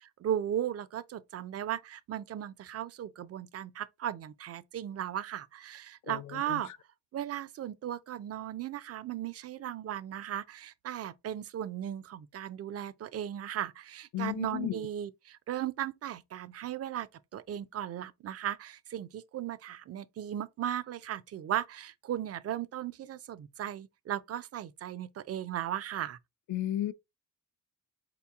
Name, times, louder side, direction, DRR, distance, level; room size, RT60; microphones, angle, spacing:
voice 1, 0.0-6.7 7.1-17.1 17.3-26.2, right 11 dB, 45° right, 0.4 m, -36 dB
voice 2, 14.1-14.8 26.5-26.9, left 13 dB, 60° left, 0.4 m, -33 dB
4.4 x 2.9 x 3.4 m
cardioid pair, 150°, 35 cm